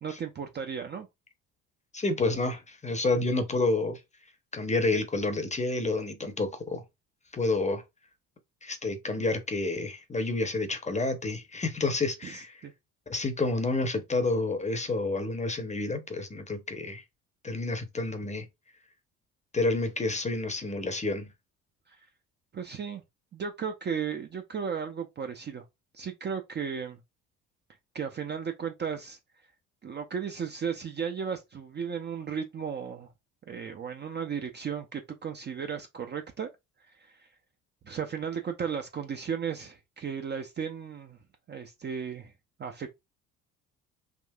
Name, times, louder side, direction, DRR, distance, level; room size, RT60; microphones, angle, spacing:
voice 1, 0.0-1.1 12.2-12.7 21.9-22.0 22.5-23.0 23.3-25.6 25.9-27.0 27.9-29.2 29.8-33.1 33.5-36.5 37.0-37.3 37.8-41.2 41.5-42.3 42.6-42.9, right 7 dB, 25° right, 0.5 m, -35 dB
voice 2, 1.9-4.0 4.5-6.8 7.3-7.8 8.6-12.6 13.1-17.0 17.4-18.5 19.5-21.3, left 2 dB, 15° left, 0.7 m, -29 dB
3.6 x 2.4 x 2.3 m
hypercardioid pair, 55°, 41 cm